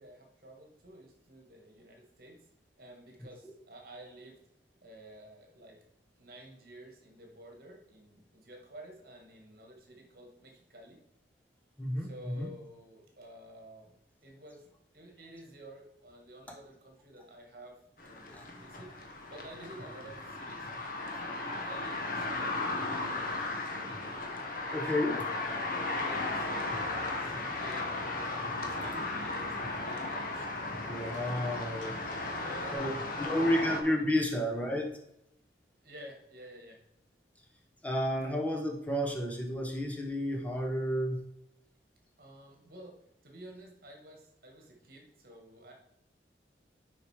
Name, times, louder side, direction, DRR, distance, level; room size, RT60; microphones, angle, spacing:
voice 1, 0.0-2.4 2.8-4.4 4.8-5.8 6.2-11.0 12.0-13.9 14.2-18.9 19.3-24.0 24.8-25.6 26.0-30.5 31.3-31.9 32.3-33.7 34.2-34.4 35.8-36.8 42.2-45.7, right 1 dB, 50° right, 1 dB, 1.6 m, -52 dB
voice 2, 11.8-12.5 18.3-18.4 24.7-25.2 30.9-31.9 32.7-32.9 33.2-34.9 37.8-41.2, equal, 10° left, 0 dB, 1.0 m, -31 dB
sound 1, 18.0-33.8, left 2 dB, 50° left, 1.2 m, -36 dB
sound 2, 26.6-32.8, left 2 dB, 80° left, 1.7 m, -47 dB
6.5 x 5.1 x 4.8 m, 0.81 s
head